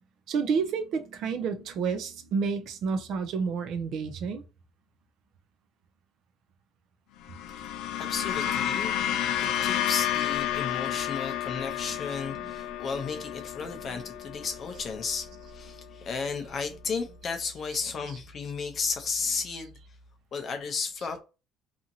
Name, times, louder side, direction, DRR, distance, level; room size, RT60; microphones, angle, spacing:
voice 1, 0.3-4.4 8.4-8.7 10.8-10.9 12.3-12.9, right 5 dB, 50° right, 0.4 m, -30 dB
sound 1, 7.2-15.7, left 11 dB, 85° left, 0.3 m, -31 dB
voice 2, 8.0-9.0 9.4-19.7 20.3-21.2, left 5 dB, 30° left, 0.5 m, -33 dB
2.8 x 2.6 x 2.6 m
cardioid pair, 175°, 0 cm